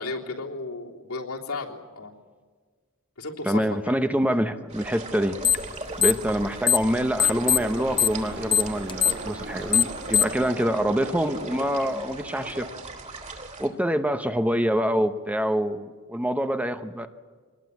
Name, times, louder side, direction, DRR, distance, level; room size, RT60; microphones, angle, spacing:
voice 1, 0.0-2.1 3.2-3.9 13.7-13.9, left 3 dB, 85° left, -1 dB, 3.4 m, -34 dB
voice 2, 3.4-5.4 6.0-12.7 13.6-17.1, equal, 5° right, 8 dB, 0.8 m, -25 dB
sound 1, 4.7-13.7, right 2 dB, 30° right, 3.0 m, -39 dB
sound 2, 5.4-5.7 6.0-6.9 7.2-10.4, left 8 dB, 20° left, 1.0 m, -21 dB
sound 3, 7.2-13.6, right 3 dB, 50° right, 1.4 m, -40 dB
24.5 x 20.0 x 8.4 m, 1.5 s
head